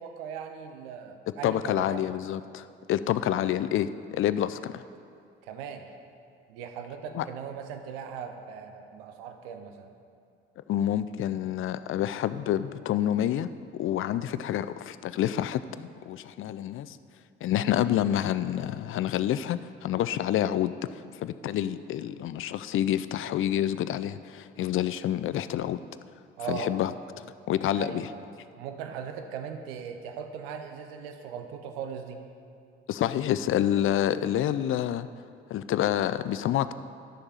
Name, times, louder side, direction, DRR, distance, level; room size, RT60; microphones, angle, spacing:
voice 1, 0.0-2.0 3.3-3.5 5.4-5.9 6.5-9.9 26.4-26.7 27.7-28.2 28.6-32.2, right 7 dB, 75° right, 6 dB, 0.7 m, -39 dB
voice 2, 1.4-4.8 7.1-7.2 10.7-17.0 17.4-25.8 26.5-26.9 27.5-28.1 32.9-35.1 35.5-36.7, left 11 dB, 45° left, 14 dB, 0.4 m, -28 dB
11.5 x 6.6 x 4.2 m, 2.4 s
figure-of-eight pair, 45°, 30 cm